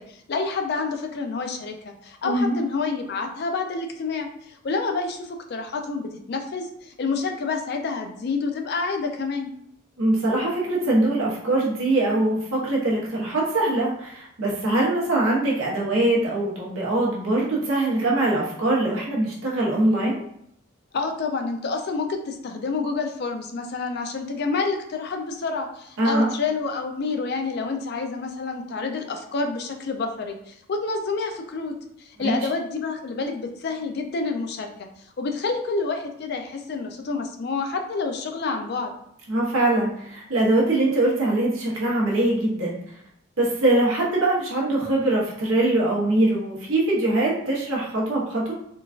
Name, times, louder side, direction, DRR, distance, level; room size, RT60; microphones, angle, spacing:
voice 1, 0.0-9.5 20.9-34.9 35.2-38.9, left 4 dB, 50° left, 4 dB, 0.4 m, -28 dB
voice 2, 2.2-2.6 10.0-20.2 26.0-26.3 32.2-32.4 39.3-42.9 43.4-48.5, right 2 dB, 85° right, -4 dB, 1.0 m, -22 dB
3.8 x 2.3 x 2.4 m, 0.72 s
head